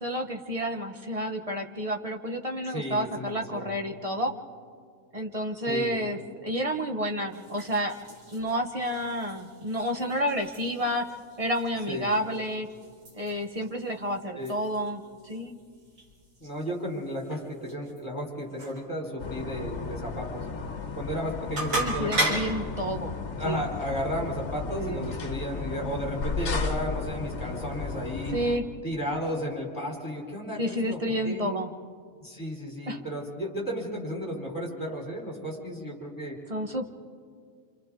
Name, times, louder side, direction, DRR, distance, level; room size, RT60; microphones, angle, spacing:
voice 1, 0.0-4.3 5.1-7.9 8.3-11.1 11.4-12.7 13.2-15.6 21.7-23.2 23.4-23.6 24.8-25.1 28.3-28.6 30.6-31.7 32.9-33.0 36.5-36.8, equal, 30° right, 2 dB, 1.0 m, -30 dB
voice 2, 2.7-3.7 5.7-6.0 11.9-12.1 14.4-14.6 16.4-20.5 21.0-22.4 23.2-28.4 28.8-31.5 32.2-36.4, equal, 15° left, -1 dB, 3.7 m, -34 dB
sound 1, 7.2-22.6, right 1 dB, 75° right, 3.3 m, -38 dB
sound 2, 19.2-28.6, left 4 dB, 55° left, 1.4 m, -34 dB
27.5 x 27.0 x 3.7 m, 2.1 s
omnidirectional pair, 1.4 m